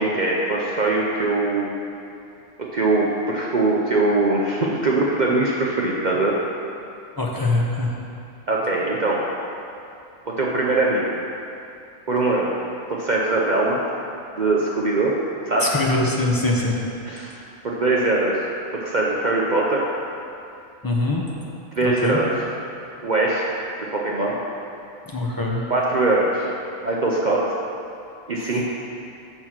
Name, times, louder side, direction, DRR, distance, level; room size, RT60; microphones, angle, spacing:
voice 1, 0.0-1.7 2.7-6.3 8.5-9.2 10.3-11.1 12.1-12.6 12.9-13.8 14.4-15.1 15.5-15.7 17.0-17.4 17.6-18.5 18.7-19.8 21.7-22.3 23.0-23.5 23.9-24.3 25.7-26.5 26.8-27.4 28.3-28.6, right 2 dB, 45° right, -3 dB, 0.6 m, -21 dB
voice 2, 7.2-7.9 15.6-16.8 20.8-21.2 21.8-22.2 25.1-25.6, left 2 dB, 20° left, -2 dB, 0.7 m, -23 dB
6.4 x 6.3 x 5.9 m, 2.6 s
omnidirectional pair, 1.4 m